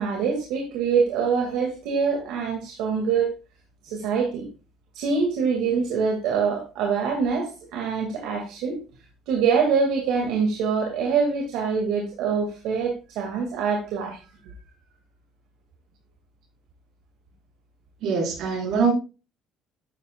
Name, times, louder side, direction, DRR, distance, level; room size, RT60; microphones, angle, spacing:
voice 1, 0.0-3.3 3.8-4.5 4.9-8.8 9.3-14.5, right 5 dB, 80° right, 2.2 m, -25 dB
voice 2, 18.0-18.9, right 5 dB, 60° right, 4.6 m, -23 dB
11.0 x 8.8 x 2.4 m
cardioid pair, 140°, 0 cm